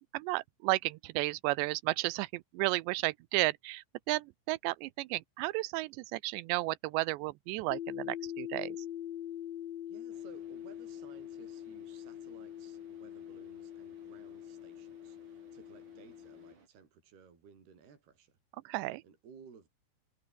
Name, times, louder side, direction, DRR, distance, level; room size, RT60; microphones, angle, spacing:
voice 1, 0.1-8.8 18.7-19.0, right 21 dB, 80° right, 2.8 m, -33 dB
sound 1, 7.7-16.5, left 11 dB, 80° left, 1.5 m, -43 dB
voice 2, 9.9-18.3 19.0-19.7, right 6 dB, 60° right, 6.7 m, -58 dB
Car / Idling, 10.1-16.7, right 5 dB, 45° right, 6.5 m, -62 dB
omnidirectional pair, 5.2 m